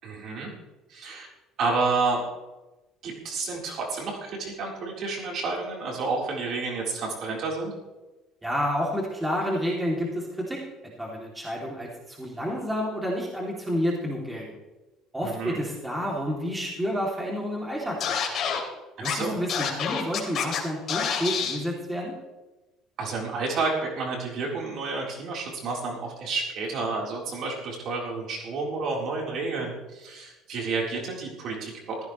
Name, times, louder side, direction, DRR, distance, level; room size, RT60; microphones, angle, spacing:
voice 1, 0.0-0.5 0.9-1.3 1.6-2.2 3.0-7.7 15.2-15.6 19.0-19.4 23.0-32.1, right 3 dB, 55° right, -2 dB, 3.9 m, -30 dB
voice 2, 8.4-10.6 11.0-14.5 15.1-18.2 19.0-22.1, equal, 10° right, -3 dB, 2.8 m, -29 dB
Scratching (performance technique), 18.0-18.6 19.0-19.1 19.5-20.6 20.9-21.6, left 7 dB, 45° left, 2.9 m, -27 dB
15.0 x 15.0 x 3.2 m, 1.1 s
cardioid pair, 130°, 0 cm